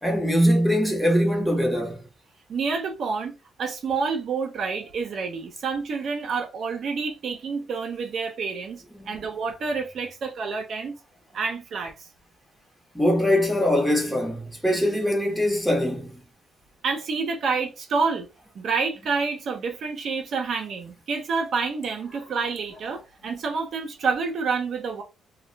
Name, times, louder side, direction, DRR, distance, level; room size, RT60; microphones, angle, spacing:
voice 1, 0.0-2.0 8.9-9.2 12.9-16.2, equal, 5° left, 1.1 m, -22 dB
voice 2, 2.5-3.3 3.6-10.9 11.3-12.1 16.8-18.3 18.5-25.0, right 5 dB, 60° right, 0.6 m, -28 dB
2.4 x 2.2 x 3.2 m
cardioid pair, 90°, 0 cm